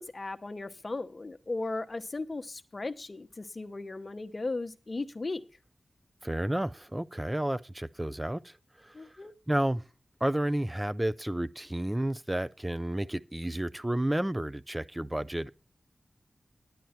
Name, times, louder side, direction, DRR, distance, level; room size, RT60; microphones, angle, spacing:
voice 1, 0.0-5.4 8.9-9.3, left 3 dB, 45° left, 0.9 m, -36 dB
voice 2, 6.2-9.1 9.5-9.8 10.2-15.5, right 1 dB, 15° right, 0.5 m, -31 dB
10.5 x 9.3 x 4.4 m
cardioid pair, 50°, 0 cm